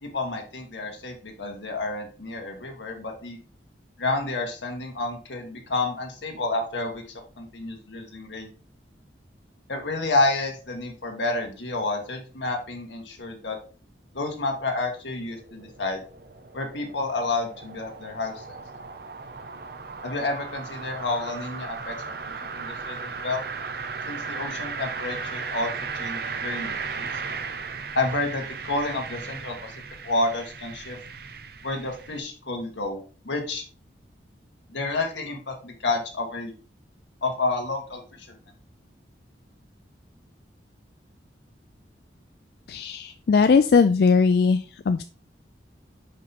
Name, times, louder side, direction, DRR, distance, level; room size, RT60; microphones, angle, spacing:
voice 1, 0.0-3.4 4.0-7.0 7.4-8.5 9.7-13.6 14.1-16.0 16.5-18.6 20.0-22.1 22.4-23.4 24.0-27.1 27.9-29.7 30.0-31.0 31.6-33.6 34.7-36.5 37.2-38.4, left 2 dB, 80° left, 3 dB, 1.6 m, -30 dB
sound 1, 14.6-32.2, right 5 dB, 55° right, 0.6 m, -36 dB
voice 2, 42.7-45.0, left 5 dB, 55° left, 9 dB, 0.3 m, -19 dB
5.5 x 5.3 x 4.1 m, 0.36 s
head